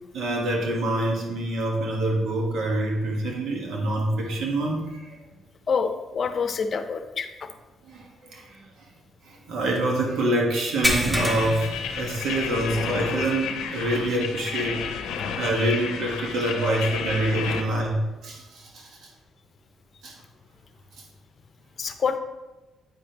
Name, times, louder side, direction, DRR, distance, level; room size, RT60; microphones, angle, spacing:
voice 1, 0.1-5.0 7.9-8.6 9.2-14.8 15.4-19.1 20.0-20.1, right 1 dB, 70° right, 0 dB, 1.5 m, -26 dB
voice 2, 5.7-7.3 21.8-22.2, left 5 dB, 50° left, 8 dB, 0.6 m, -26 dB
sound 1, 10.8-12.7 13.1-13.3 13.7-13.8 15.5-15.6, left 1 dB, 5° right, 1.1 m, -27 dB
sound 2, 11.1-17.6, left 6 dB, 90° left, 0.6 m, -31 dB
8.7 x 5.1 x 3.0 m, 1.1 s
cardioid pair, 90°, 0 cm